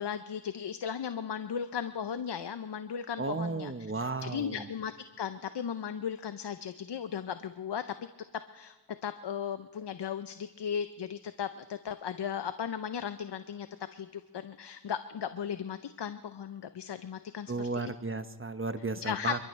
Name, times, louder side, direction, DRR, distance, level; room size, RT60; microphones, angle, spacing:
voice 1, 0.0-4.9 5.2-7.8 8.5-8.8 9.0-13.7 13.9-17.9 19.0-19.4, left 8 dB, 70° left, 11 dB, 0.7 m, -36 dB
voice 2, 3.2-4.7 17.5-19.4, right 3 dB, 30° right, 10 dB, 1.0 m, -34 dB
27.5 x 13.5 x 3.3 m, 1.2 s
cardioid pair, 45°, 43 cm